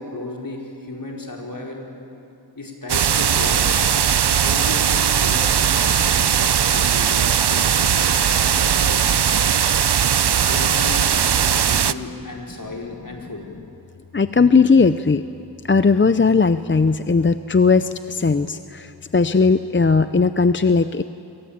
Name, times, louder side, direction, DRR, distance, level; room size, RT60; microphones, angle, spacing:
voice 1, 0.0-1.9 2.5-4.1 4.4-9.0 10.4-13.4, left 2 dB, 50° left, -1 dB, 4.7 m, -34 dB
sound 1, 2.9-11.9, right 8 dB, 70° right, 0.7 m, -19 dB
voice 2, 14.1-15.2 15.7-21.0, left 4 dB, 30° left, 11 dB, 0.6 m, -17 dB
27.5 x 23.0 x 8.7 m, 2.7 s
wide cardioid pair, 75°, 41 cm